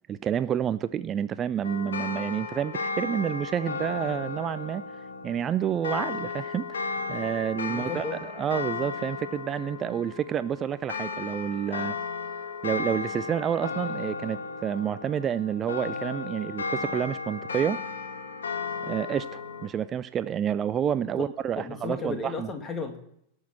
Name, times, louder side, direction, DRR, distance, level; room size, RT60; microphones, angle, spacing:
voice 1, 0.1-4.8 5.2-11.9 12.6-17.8 18.8-22.5, right 9 dB, 25° right, 15 dB, 0.4 m, -29 dB
sound 1, 1.6-19.7, left 4 dB, 70° left, 1.6 m, -35 dB
voice 2, 7.7-8.2 21.2-21.3 21.6-23.0, left 4 dB, 20° left, 5 dB, 2.3 m, -34 dB
18.0 x 6.4 x 7.3 m, 0.76 s
figure-of-eight pair, 90°, 0 cm